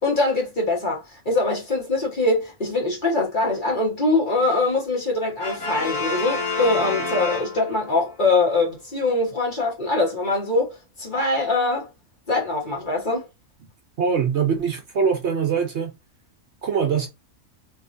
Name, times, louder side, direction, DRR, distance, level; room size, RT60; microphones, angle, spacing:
voice 1, 0.0-11.9 12.3-13.2, left 2 dB, 35° left, 1.5 m, -23 dB
Brass instrument, 5.4-8.1, left 3 dB, 65° left, 1.4 m, -28 dB
voice 2, 14.0-15.9 16.6-17.1, right 6 dB, 60° right, 0.9 m, -22 dB
3.1 x 3.0 x 2.6 m
omnidirectional pair, 1.5 m